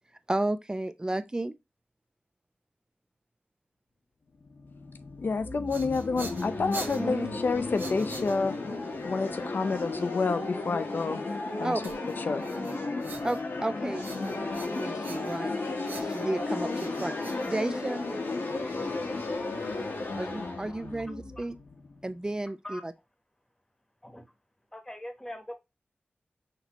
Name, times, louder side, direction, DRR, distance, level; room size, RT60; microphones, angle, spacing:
voice 1, 0.3-1.5 7.0-7.3 11.6-11.8 13.2-14.0 14.7-15.5 16.0-17.1 17.5-18.0 20.2-21.6 22.0-22.9, right 1 dB, 20° right, 0.3 m, -32 dB
sound 1, 4.4-22.2, left 3 dB, 85° left, 1.1 m, -34 dB
voice 2, 5.2-8.5 9.0-11.2 11.6-11.8 12.2-12.4, left 4 dB, 65° left, 0.5 m, -29 dB
sound 2, 5.4-8.8 11.8-13.7 14.0-15.5 15.8-18.1, right 3 dB, 65° right, 0.9 m, -44 dB
voice 3, 24.7-25.5, left 1 dB, 15° left, 1.0 m, -41 dB
5.9 x 2.8 x 2.9 m
wide cardioid pair, 100°, 4 cm